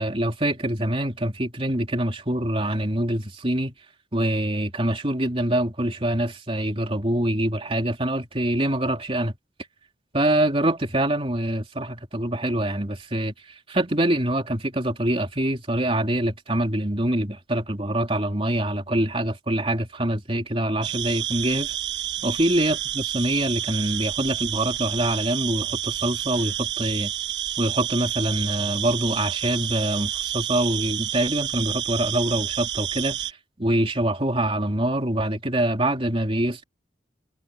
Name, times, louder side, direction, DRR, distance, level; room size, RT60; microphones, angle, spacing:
voice 1, 0.0-3.7 4.1-9.3 10.1-13.3 13.7-21.7 22.2-27.1 27.6-36.6, right 1 dB, 30° right, 3.1 m, -25 dB
sound 1, 20.8-33.3, right 11 dB, 70° right, 1.1 m, -29 dB
head